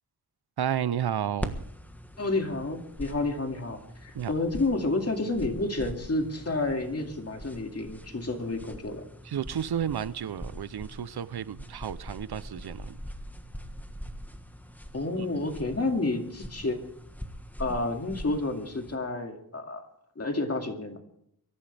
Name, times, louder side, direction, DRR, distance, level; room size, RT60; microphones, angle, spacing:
voice 1, 0.6-1.5 4.1-4.3 9.3-13.0 15.2-15.3, right 9 dB, 80° right, 0.7 m, -32 dB
sound 1, 1.4-19.0, equal, 5° left, 1.4 m, -43 dB
voice 2, 2.2-9.0 14.9-16.8 17.6-19.8 20.2-21.0, left 2 dB, 40° left, 2.3 m, -30 dB
23.5 x 14.0 x 3.4 m
wide cardioid pair, 110°, 38 cm